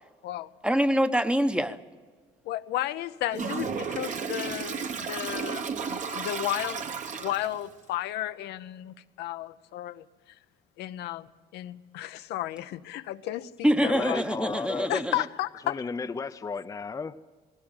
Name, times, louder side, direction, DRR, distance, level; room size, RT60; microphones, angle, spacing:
voice 1, 0.6-1.8 13.6-15.2, equal, 5° right, 10 dB, 1.0 m, -25 dB
voice 2, 2.4-6.8 7.1-10.0 10.8-13.5 13.8-14.2 14.9-15.9, left 13 dB, 80° left, 10 dB, 0.8 m, -33 dB
Toilet flush, 3.3-7.7, right 6 dB, 45° right, 1.4 m, -33 dB
voice 3, 13.8-14.9 15.6-17.1, left 5 dB, 20° left, 9 dB, 0.6 m, -34 dB
19.0 x 17.5 x 8.9 m, 1.4 s
cardioid pair, 110°, 17 cm